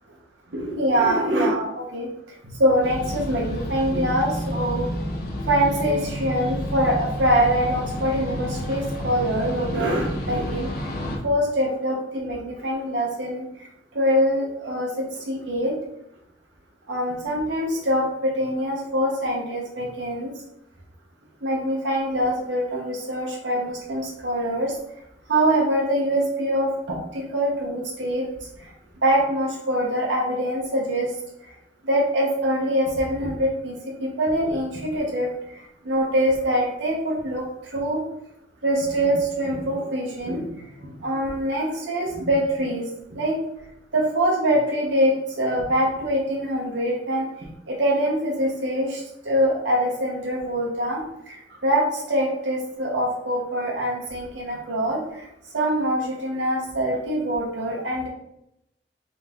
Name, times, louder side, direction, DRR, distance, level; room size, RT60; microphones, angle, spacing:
voice 1, 0.5-1.7 1.9-2.0 2.4-4.9 5.5-10.9 11.2-13.5 13.9-15.7 16.9-20.3 21.4-24.7 25.3-28.2 29.0-31.1 31.8-38.0 38.6-42.8 43.1-43.4 43.9-47.3 47.7-51.0 51.3-55.3 55.5-58.1, equal, 85° right, -2 dB, 0.8 m, -24 dB
sound 1, 2.8-11.2, left 1 dB, 55° left, 0.8 m, -30 dB
3.8 x 2.9 x 3.6 m, 0.81 s
head